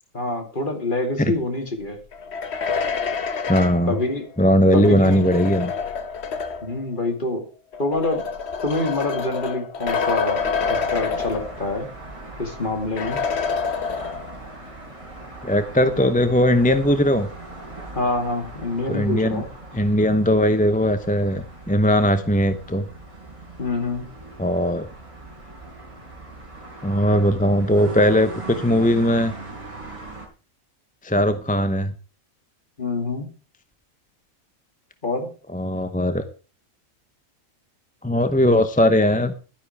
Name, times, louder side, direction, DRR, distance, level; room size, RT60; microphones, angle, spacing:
voice 1, 0.1-2.0 3.9-4.3 4.7-5.3 6.6-7.4 7.8-8.2 8.6-10.4 10.7-11.9 12.4-13.2 18.0-19.5 23.6-24.1 32.8-33.3 35.0-35.3, left 2 dB, 35° left, 4 dB, 2.7 m, -26 dB
sound 1, 2.1-6.8 7.7-11.9 12.2-12.3 13.0-14.5, left 5 dB, 50° left, 1.2 m, -28 dB
voice 2, 3.5-3.9 4.4-5.7 15.4-17.3 18.9-19.4 19.7-22.9 24.4-24.9 26.8-29.3 31.0-31.9 35.5-36.2 38.0-39.4, equal, 10° left, 10 dB, 0.6 m, -19 dB
sound 2, 10.4-30.3, right 2 dB, 20° right, 4.4 m, -39 dB
12.0 x 10.0 x 4.7 m, 0.36 s
omnidirectional pair, 1.5 m